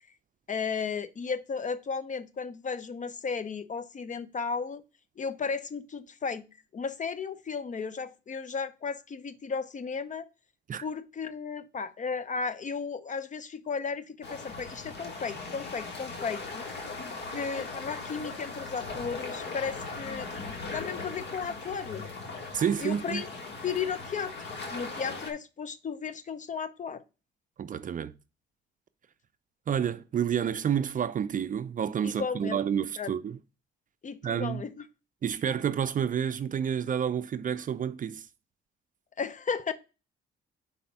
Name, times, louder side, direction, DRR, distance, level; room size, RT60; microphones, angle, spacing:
voice 1, 0.5-4.8 5.2-6.4 6.7-10.3 10.8-16.7 17.3-20.3 20.7-22.1 22.8-23.3 23.6-27.0 32.0-32.6 33.0-33.1 34.0-34.9 39.2-39.7, left 5 dB, 40° left, 0.7 m, -34 dB
sound 1, 14.2-25.3, left 3 dB, 60° left, 1.8 m, -39 dB
voice 2, 22.5-23.2 27.6-28.1 29.7-33.4 34.2-34.6 35.2-38.2, right 8 dB, 40° right, 0.5 m, -29 dB
5.2 x 4.2 x 5.8 m
cardioid pair, 90°, 20 cm